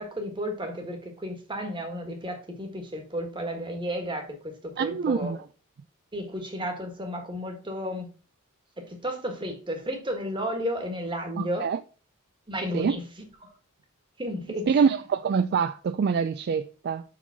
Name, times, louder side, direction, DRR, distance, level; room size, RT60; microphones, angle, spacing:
voice 1, 0.0-4.3 4.6-5.4 6.1-8.1 8.8-11.7 12.5-13.0 13.4-13.5 14.2-14.8, equal, 20° right, 1.5 m, -33 dB
voice 2, 4.8-5.4 11.4-11.8 12.7-13.0 14.7-17.0, right 6 dB, 45° right, 0.3 m, -25 dB
5.4 x 4.9 x 5.7 m
head